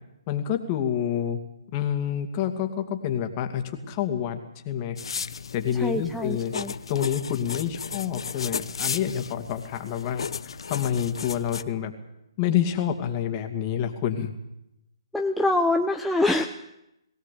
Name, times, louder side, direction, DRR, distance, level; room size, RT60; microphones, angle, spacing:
voice 1, 0.3-1.4 1.7-5.0 5.5-6.5 6.9-10.3 10.7-11.9 12.4-14.3, left 9 dB, 30° left, 5 dB, 2.5 m, -28 dB
sound 1, 5.0-11.6, left 6 dB, 70° left, 0.8 m, -35 dB
voice 2, 5.7-6.7 15.1-16.5, left 2 dB, ahead, 2 dB, 0.8 m, -25 dB
21.5 x 17.0 x 8.5 m, 0.86 s
hypercardioid pair, 150°, 3 cm